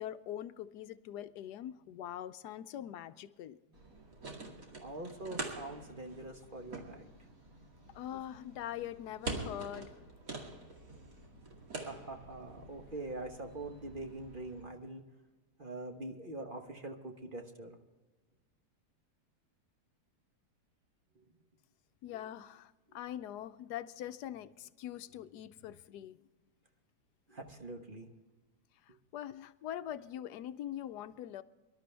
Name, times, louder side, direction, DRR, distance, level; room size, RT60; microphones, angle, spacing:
voice 1, 0.0-3.6 7.9-9.9 22.0-26.2 28.8-31.4, left 11 dB, 80° left, 12 dB, 1.1 m, -43 dB
sound 1, 3.7-14.6, right 2 dB, 55° right, 2.7 m, -46 dB
voice 2, 4.8-7.1 11.8-15.0 15.6-17.8 27.3-28.1, right 2 dB, 35° right, 4 dB, 1.2 m, -44 dB
24.0 x 12.0 x 3.4 m, 1.2 s
omnidirectional pair, 1.8 m